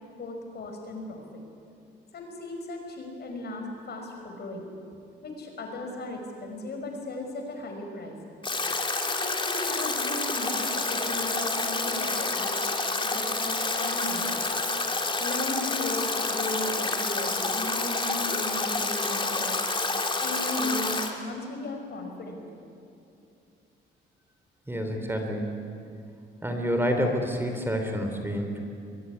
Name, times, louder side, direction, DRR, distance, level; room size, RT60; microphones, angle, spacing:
voice 1, 0.2-1.4 2.1-4.7 5.2-8.2 9.1-12.6 13.0-14.4 15.2-19.5 20.2-22.5, left 2 dB, 55° left, 3 dB, 5.9 m, -36 dB
Stream / Drip / Trickle dribble, 8.4-21.1, left 3 dB, 25° left, 2.8 m, -28 dB
voice 2, 24.7-25.6 26.4-28.6, equal, 10° right, 4 dB, 3.7 m, -28 dB
22.5 x 22.5 x 9.7 m, 2.6 s
cardioid pair, 90°, 20 cm